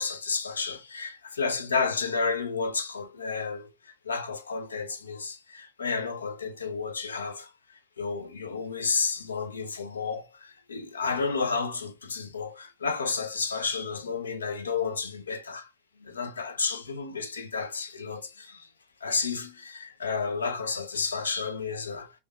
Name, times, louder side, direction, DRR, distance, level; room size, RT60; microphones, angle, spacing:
voice 1, 0.0-7.5 8.0-15.7 16.0-18.7 19.0-22.1, left 5 dB, 70° left, 0.6 m, -31 dB
6.0 x 2.5 x 2.3 m
figure-of-eight pair, 90°, 0 cm